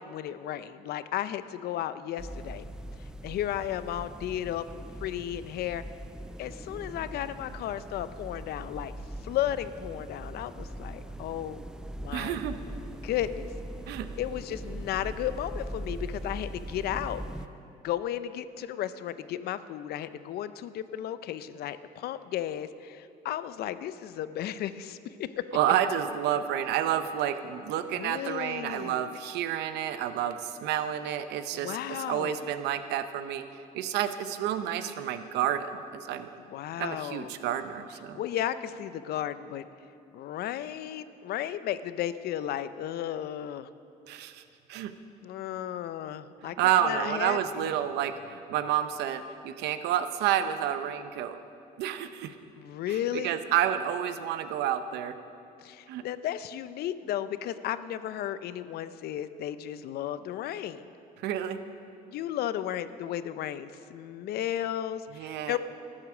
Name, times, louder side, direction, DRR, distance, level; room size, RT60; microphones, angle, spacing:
voice 1, 0.1-2.6 3.2-5.8 6.4-8.9 9.2-11.6 11.9-12.4 13.0-13.5 14.2-17.2 17.8-25.4 28.0-29.0 31.5-32.4 36.5-37.3 38.2-39.7 40.1-43.7 45.2-47.7 52.6-53.4 55.6-60.9 62.1-65.6, left 11 dB, 70° left, 13 dB, 0.6 m, -34 dB
sound 1, 2.2-17.5, right 1 dB, 5° right, 0.4 m, -41 dB
voice 2, 12.1-12.5 13.9-14.1 25.5-33.4 33.7-35.7 36.1-36.3 36.8-38.2 44.1-44.4 44.7-44.9 46.4-51.4 51.8-52.3 52.9-55.1 55.9-56.0 61.2-61.6 65.1-65.6, right 10 dB, 85° right, 10 dB, 0.7 m, -29 dB
13.0 x 8.6 x 6.2 m, 2.6 s
cardioid pair, 110°, 17 cm